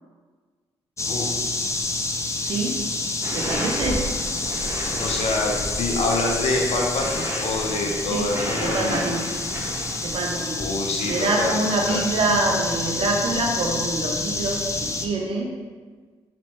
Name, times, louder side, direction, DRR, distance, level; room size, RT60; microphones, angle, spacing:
sound 1, 1.0-15.1, left 2 dB, 25° left, 0.5 m, -28 dB
voice 1, 2.4-2.8 3.3-4.0 8.1-8.3 8.6-9.2 10.0-10.6 11.1-15.5, right 2 dB, 60° right, 0 dB, 0.6 m, -25 dB
sound 2, 3.2-11.3, right 1 dB, 20° right, 1.1 m, -35 dB
voice 2, 5.0-9.1 10.6-11.6 11.9-12.0, left 2 dB, 70° left, 0 dB, 0.7 m, -26 dB
4.2 x 3.1 x 3.0 m, 1.5 s
supercardioid pair, 55°, 11 cm